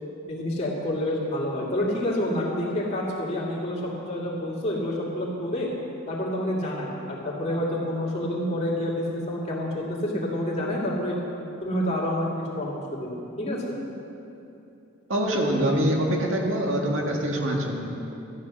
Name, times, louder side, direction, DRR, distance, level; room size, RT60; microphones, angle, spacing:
voice 1, 0.3-5.7 6.1-11.2 11.6-13.6, left 1 dB, 30° left, -4 dB, 2.5 m, -28 dB
voice 2, 15.1-17.9, equal, 75° right, 0 dB, 1.8 m, -24 dB
13.0 x 9.8 x 6.4 m, 2.8 s
head